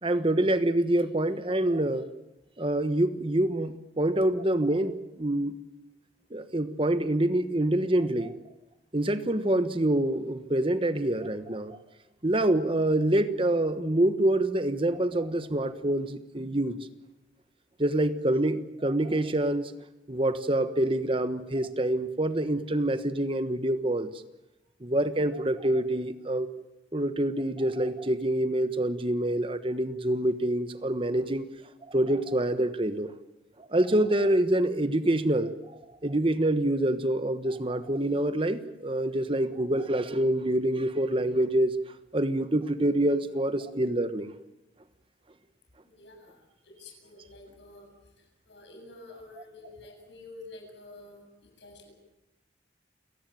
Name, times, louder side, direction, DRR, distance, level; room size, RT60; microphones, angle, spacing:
voice 1, 0.0-2.1 2.6-5.6 6.3-8.3 8.9-11.8 12.2-16.8 17.8-19.7 20.1-24.1 24.8-26.5 26.9-31.5 31.9-33.1 33.6-35.5 36.0-41.7 42.1-44.3, right 1 dB, 30° right, 11 dB, 1.2 m, -26 dB
voice 2, 45.8-47.9 48.5-51.9, left 2 dB, 80° left, 4 dB, 7.7 m, -49 dB
29.5 x 18.0 x 9.3 m, 0.95 s
head